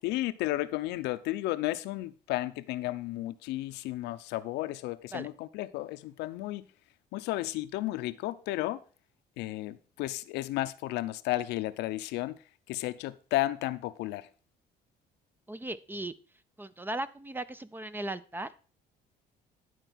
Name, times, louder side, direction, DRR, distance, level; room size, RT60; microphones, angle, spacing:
voice 1, 0.0-6.6 7.1-8.8 9.4-12.4 12.7-14.3, left 16 dB, 90° left, 0.7 m, -33 dB
voice 2, 15.5-16.1 16.6-18.5, right 1 dB, 10° right, 0.5 m, -37 dB
11.0 x 4.5 x 6.0 m
cardioid pair, 110°, 17 cm